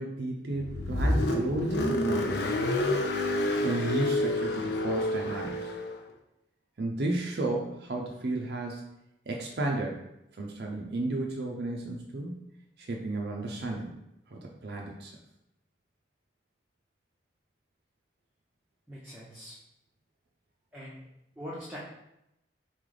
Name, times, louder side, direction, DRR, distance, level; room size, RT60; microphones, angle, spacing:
voice 1, 0.0-2.5 3.6-5.7 6.8-8.9 9.3-10.0 10.4-12.3 12.8-13.9 14.3-15.1, right 2 dB, 60° right, 0 dB, 0.5 m, -33 dB
Car, 0.6-6.0, left 1 dB, 60° left, 0.5 m, -28 dB
voice 2, 18.9-19.6 20.7-21.0 21.4-21.8, equal, 10° right, -7 dB, 0.7 m, -42 dB
3.9 x 3.2 x 3.8 m, 0.85 s
head